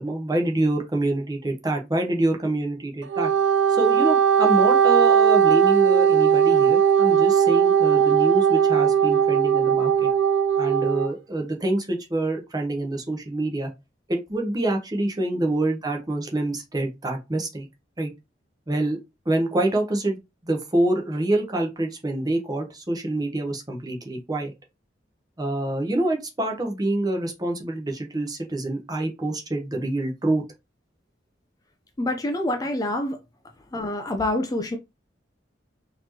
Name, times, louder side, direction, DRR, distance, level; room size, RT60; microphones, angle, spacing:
voice 1, 0.0-3.3 3.7-10.1 10.6-13.7 14.1-17.7 18.0-18.1 18.7-19.0 19.3-20.2 20.4-24.5 25.4-30.4, right 1 dB, 20° right, 0.9 m, -26 dB
Wind instrument woodwind instrument, 3.0-11.1, right 8 dB, 80° right, 0.4 m, -18 dB
voice 2, 32.0-33.2 33.7-34.8, left 1 dB, 20° left, 0.4 m, -26 dB
4.1 x 3.0 x 2.8 m
head